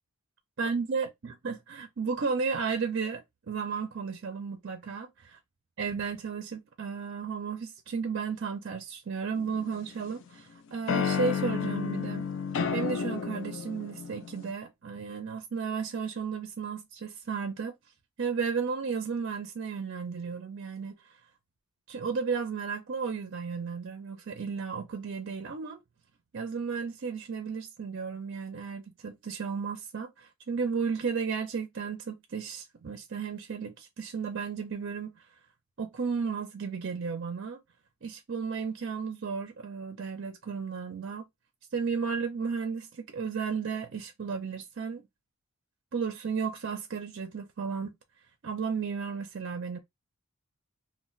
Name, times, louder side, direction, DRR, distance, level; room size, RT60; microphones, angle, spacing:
voice 1, 0.6-5.3 5.8-12.3 12.7-17.7 18.2-21.0 21.9-25.8 26.3-35.2 35.8-37.6 38.0-41.2 41.7-45.0 45.9-47.9 48.4-49.8, right 5 dB, 55° right, 0.5 m, -34 dB
sound 1, 9.3-10.2 10.9-14.5, left 6 dB, 55° left, 0.3 m, -31 dB
2.2 x 2.1 x 3.8 m
head